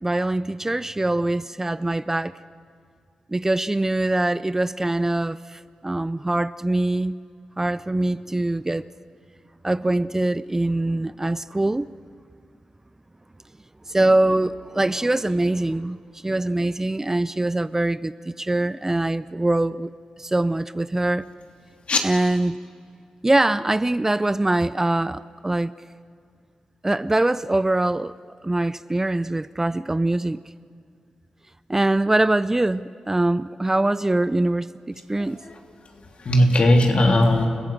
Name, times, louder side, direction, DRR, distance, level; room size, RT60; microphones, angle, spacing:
voice 1, 0.0-2.3 3.3-7.2 7.6-8.9 9.6-11.9 13.9-16.0 16.2-19.9 20.2-21.3 22.0-22.6 23.2-25.7 26.8-28.1 28.4-30.4 31.7-35.4, right 2 dB, 20° right, 0.5 m, -23 dB
voice 2, 35.2-35.6 36.0-37.5, left 1 dB, 60° left, 3.0 m, -19 dB
29.5 x 16.0 x 7.3 m
cardioid pair, 60°, 2 cm